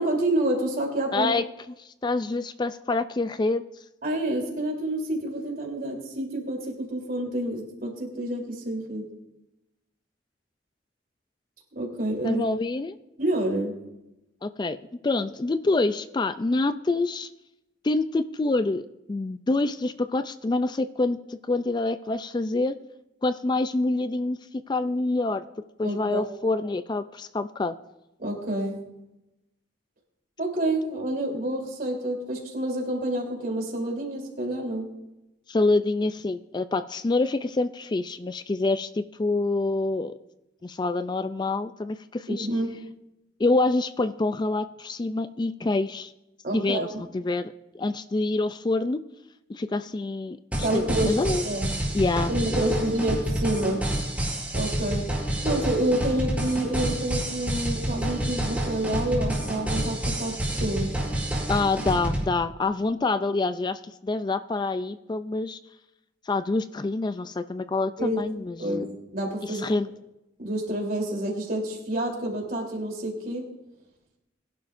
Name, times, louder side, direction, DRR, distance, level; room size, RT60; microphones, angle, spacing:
voice 1, 0.0-1.3 4.0-9.0 11.7-12.4 13.2-13.7 25.8-26.2 28.2-28.8 30.4-34.9 42.3-42.8 46.4-47.0 50.6-51.7 52.3-53.8 54.5-55.1 55.4-61.0 68.0-68.2 68.6-69.7 70.4-73.4, right 1 dB, 50° right, 0 dB, 3.4 m, -28 dB
voice 2, 1.1-1.4 1.8-3.6 12.2-13.0 14.4-14.8 15.0-17.3 17.8-18.8 19.1-22.8 23.2-24.4 24.7-25.4 25.8-27.7 35.5-40.1 40.6-42.5 43.4-46.1 46.5-46.9 47.1-49.0 49.5-51.5 51.9-52.6 52.9-53.0 61.5-65.6 66.3-68.9 69.4-69.9, left 3 dB, 25° left, 12 dB, 0.3 m, -26 dB
sound 1, 50.5-62.2, right 1 dB, 10° right, 4.7 m, -28 dB
21.5 x 11.5 x 2.6 m, 0.93 s
head